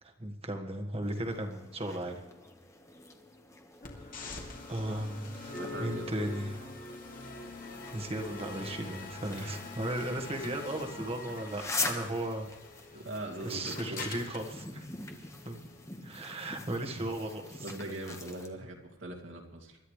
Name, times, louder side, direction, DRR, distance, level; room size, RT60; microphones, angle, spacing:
voice 1, 0.0-2.2 4.7-6.6 7.9-12.5 13.4-14.8 15.4-15.6 16.0-17.6, right 1 dB, 30° right, 3 dB, 1.8 m, -36 dB
sound 1, 1.0-18.5, left 3 dB, 15° left, 1.4 m, -44 dB
sound 2, 3.8-15.8, left 3 dB, 45° left, 2.6 m, -45 dB
voice 2, 5.4-6.3 11.8-12.0 12.9-14.0 15.0-15.3 17.5-19.8, right 1 dB, 65° right, 0 dB, 2.6 m, -42 dB
25.5 x 12.5 x 3.3 m, 1.1 s
head